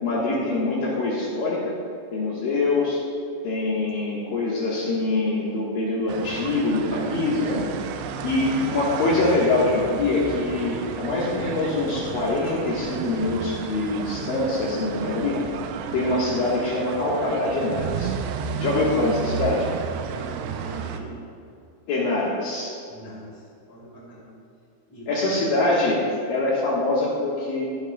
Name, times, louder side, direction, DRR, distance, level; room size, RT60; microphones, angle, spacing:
voice 1, 0.0-1.7 2.1-3.0 3.4-7.6 8.2-15.4 15.9-18.1 18.6-19.7 21.9-22.8 25.1-26.0 26.3-27.7, left 2 dB, 65° left, -5 dB, 2.7 m, -24 dB
sound 1, 6.1-21.0, right 8 dB, 85° right, 2.6 m, -32 dB
voice 2, 20.0-21.2 22.9-24.3 24.9-25.2, right 1 dB, 10° left, -6 dB, 1.4 m, -42 dB
21.0 x 8.0 x 2.2 m, 2.5 s
omnidirectional pair, 4.9 m